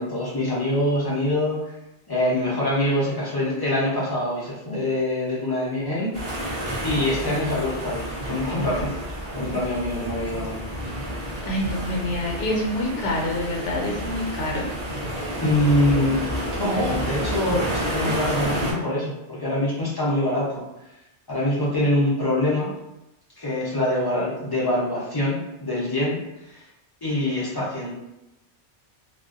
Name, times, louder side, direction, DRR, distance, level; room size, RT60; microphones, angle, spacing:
voice 1, 0.0-1.7 2.1-6.1 6.8-8.9 9.3-10.6 15.4-16.2 16.6-20.6 21.3-22.7 23.4-26.2 26.5-26.7 27.0-27.9, left 1 dB, 30° left, -7 dB, 0.4 m, -24 dB
sound 1, 6.1-18.7, equal, 35° right, 0.6 m, -30 dB
voice 2, 11.4-14.7, left 1 dB, 65° left, -1 dB, 0.9 m, -26 dB
2.4 x 2.1 x 2.4 m, 0.92 s
omnidirectional pair, 1.2 m